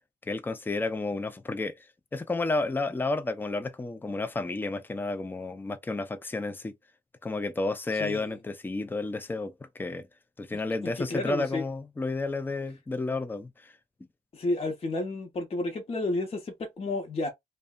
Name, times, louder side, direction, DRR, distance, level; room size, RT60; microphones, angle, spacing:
voice 1, 0.2-6.7 7.2-10.1 10.4-13.7, left 3 dB, 15° left, 0.4 m, -31 dB
voice 2, 8.0-8.3 11.0-11.6 14.3-17.3, left 2 dB, 40° left, 0.8 m, -31 dB
2.6 x 2.1 x 2.3 m
cardioid pair, 90°, 16 cm